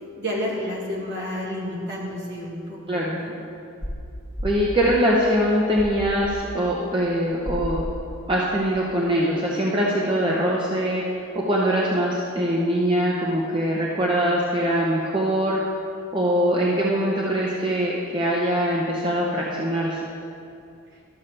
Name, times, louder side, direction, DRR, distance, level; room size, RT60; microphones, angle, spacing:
voice 1, 0.2-3.3, left 1 dB, 55° right, -5 dB, 2.0 m, -30 dB
sound 1, 3.8-4.0 4.4-4.7 5.8-6.4 7.5-8.0, left 1 dB, 20° left, 1.7 m, -31 dB
voice 2, 4.4-7.9 8.3-15.6 16.1-20.0, equal, 25° right, -4 dB, 0.7 m, -22 dB
12.5 x 7.2 x 3.3 m, 2.6 s
head